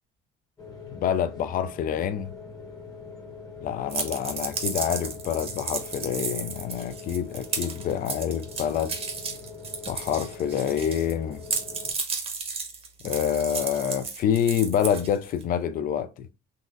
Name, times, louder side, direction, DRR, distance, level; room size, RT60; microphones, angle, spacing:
sound 1, 0.6-11.9, left 4 dB, 20° left, 0.9 m, -43 dB
voice 1, 0.9-2.3 3.6-9.0 9.9-11.4 13.0-16.3, left 9 dB, 45° left, 0.4 m, -27 dB
sound 2, 3.9-11.1 11.4-15.4, right 5 dB, 30° right, 0.8 m, -33 dB
4.0 x 2.5 x 2.5 m
cardioid pair, 130°, 20 cm